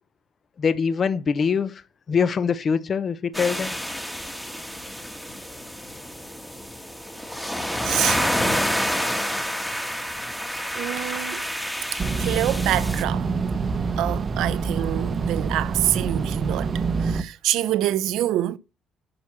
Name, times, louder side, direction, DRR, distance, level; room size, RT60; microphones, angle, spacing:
voice 1, 0.6-1.8 2.1-3.8, left 6 dB, 35° left, 0.8 m, -23 dB
sound 1, 3.3-13.0, equal, ahead, 1.3 m, -28 dB
voice 2, 7.8-8.2 9.7-9.8 10.8-11.5 11.9-13.3 14.0-18.6, right 13 dB, 75° right, 0.8 m, -26 dB
sound 2, 12.0-17.2, right 4 dB, 30° right, 0.9 m, -26 dB
10.5 x 6.1 x 6.0 m
cardioid pair, 145°, 0 cm